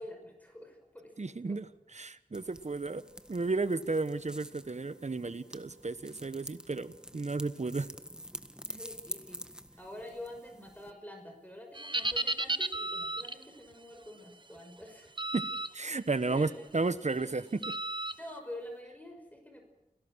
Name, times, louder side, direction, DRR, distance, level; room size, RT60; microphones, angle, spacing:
voice 1, 0.0-1.6 8.7-9.4 9.8-15.1 16.3-16.6 18.2-19.6, left 1 dB, 10° left, 2 dB, 5.5 m, -47 dB
voice 2, 1.2-3.0 3.3-7.9 15.3-15.5 15.7-17.8, right 3 dB, 55° right, 14 dB, 1.1 m, -33 dB
sound 1, 2.3-10.9, equal, 5° right, 1.6 m, -48 dB
sound 2, 11.7-13.4 15.2-15.7 16.1-16.4 17.6-18.1, right 2 dB, 35° right, 1.1 m, -33 dB
30.0 x 17.5 x 6.3 m, 0.91 s
wide cardioid pair, 55°, 14 cm